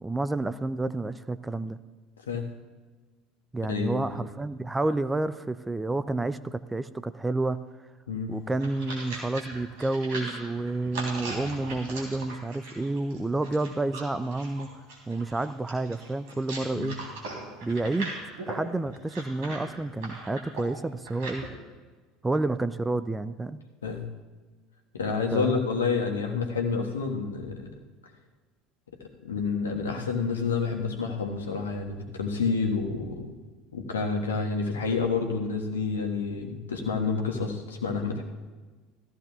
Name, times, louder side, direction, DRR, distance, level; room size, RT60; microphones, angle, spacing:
voice 1, 0.0-1.8 3.5-7.6 8.3-14.7 15.1-17.0 17.6-18.1 18.5-21.5 22.2-23.6 25.3-25.6 26.1-26.2, right 2 dB, 10° right, 13 dB, 0.4 m, -29 dB
voice 2, 3.7-4.2 8.1-8.3 16.7-16.9 23.8-24.0 24.9-27.7 29.2-33.3 33.7-38.2, left 5 dB, 75° left, 2 dB, 1.4 m, -29 dB
me eating carrots, 8.3-21.5, right 2 dB, 60° right, 3.3 m, -39 dB
17.5 x 14.5 x 2.4 m, 1.3 s
figure-of-eight pair, 70°, 0 cm